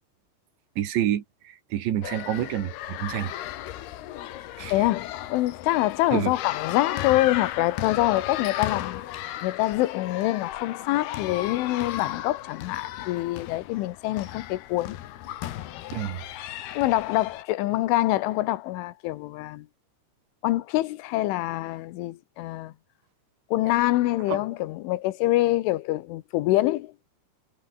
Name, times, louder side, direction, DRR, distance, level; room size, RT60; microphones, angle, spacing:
voice 1, 0.8-3.3 4.6-4.9 6.1-6.3 15.9-16.2 24.3-24.4, right 11 dB, 70° right, 4.1 m, -28 dB
sound 1, 2.0-17.4, left 13 dB, 65° left, 3.0 m, -35 dB
voice 2, 4.7-9.0 9.4-15.0 16.8-19.7 20.4-22.7 23.5-26.9, left 17 dB, 85° left, 3.6 m, -25 dB
omnidirectional pair, 5.5 m